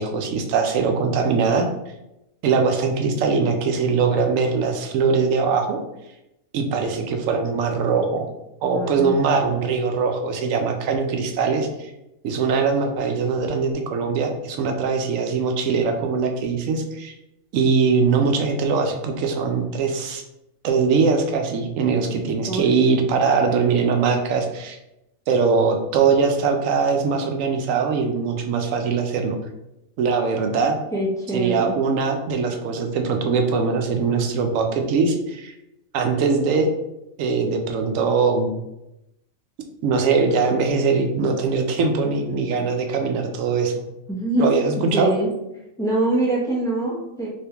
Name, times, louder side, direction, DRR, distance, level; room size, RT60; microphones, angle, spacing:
voice 1, 0.0-1.7 2.4-5.8 6.5-8.3 8.6-11.9 12.2-17.1 17.5-20.2 20.6-24.8 25.3-29.4 30.0-30.8 31.3-35.5 35.9-36.7 37.2-38.5 39.8-43.8 44.4-45.1, right 5 dB, 80° right, 4 dB, 1.0 m, -21 dB
voice 2, 8.6-9.1 22.5-22.6 30.9-31.6 44.1-44.5 44.9-45.3 45.8-47.3, right 1 dB, 5° left, -5 dB, 0.5 m, -23 dB
3.4 x 3.0 x 2.8 m, 0.89 s
omnidirectional pair, 1.4 m